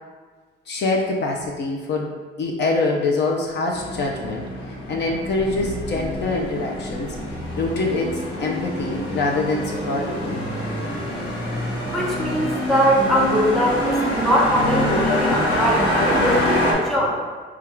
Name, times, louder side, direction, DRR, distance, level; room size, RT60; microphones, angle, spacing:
voice 1, 0.7-2.1 2.4-4.5 4.9-7.2 7.6-10.4 15.3-15.4 16.0-16.5, left 3 dB, 60° left, -1 dB, 0.6 m, -24 dB
sound 1, 3.7-16.7, left 1 dB, 85° left, 1.1 m, -26 dB
voice 2, 11.8-17.2, equal, ahead, -4 dB, 1.1 m, -21 dB
3.5 x 2.4 x 4.3 m, 1.4 s
cardioid pair, 90°, 20 cm